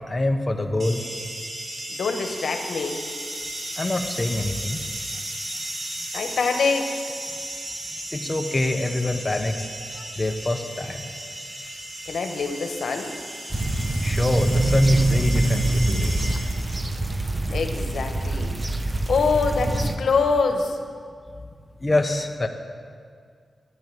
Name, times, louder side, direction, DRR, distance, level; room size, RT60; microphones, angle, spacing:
voice 1, 0.1-1.0 3.8-4.8 8.1-9.7 9.9-11.1 14.0-16.3 21.8-22.5, left 2 dB, 25° left, 4 dB, 0.9 m, -25 dB
sound 1, 0.8-16.8, right 1 dB, 60° right, 3.2 m, -35 dB
voice 2, 1.9-3.0 6.1-7.0 12.0-13.2 17.5-18.6 19.1-20.8, left 4 dB, 85° left, 5 dB, 1.1 m, -24 dB
sound 2, 13.5-20.0, right 1 dB, 25° right, 0.8 m, -24 dB
11.5 x 10.0 x 7.7 m, 2.1 s
wide cardioid pair, 115°, 0 cm